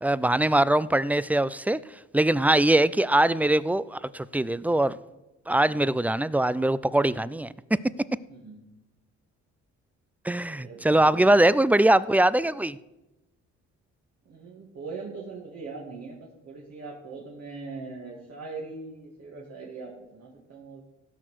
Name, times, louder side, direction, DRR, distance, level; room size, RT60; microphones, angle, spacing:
voice 1, 0.0-1.8 2.1-5.0 5.5-7.8 10.2-12.8, right 1 dB, 5° right, 19 dB, 0.3 m, -22 dB
voice 2, 8.3-8.6 10.5-11.4 14.3-20.8, right 4 dB, 60° right, -4 dB, 2.4 m, -41 dB
16.0 x 6.0 x 6.3 m, 0.99 s
cardioid pair, 90°, 30 cm